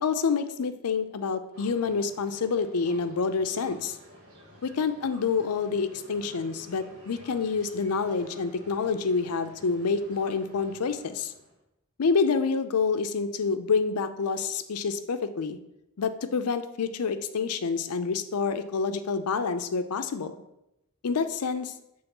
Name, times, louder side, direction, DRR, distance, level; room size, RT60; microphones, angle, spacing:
voice 1, 0.0-4.0 4.6-11.3 12.0-15.6 16.0-20.3 21.0-21.7, left 5 dB, 85° left, 10 dB, 0.5 m, -28 dB
sound 1, 1.5-11.6, equal, 75° right, 1.4 m, -52 dB
7.1 x 3.2 x 5.3 m, 0.87 s
head